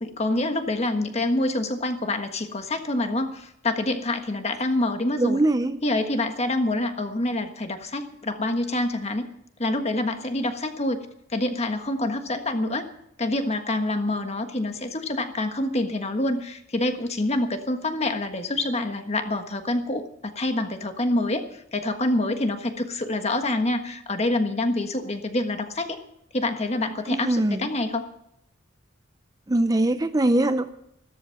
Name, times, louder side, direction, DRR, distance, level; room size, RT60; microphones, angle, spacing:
voice 1, 0.0-5.4 5.8-9.3 9.6-11.0 11.3-12.9 13.2-26.0 26.3-28.1, left 2 dB, 35° left, 7 dB, 1.5 m, -26 dB
voice 2, 5.2-5.8 27.1-27.7 29.5-30.7, right 1 dB, 20° right, 10 dB, 0.6 m, -22 dB
14.0 x 13.5 x 5.9 m, 0.77 s
head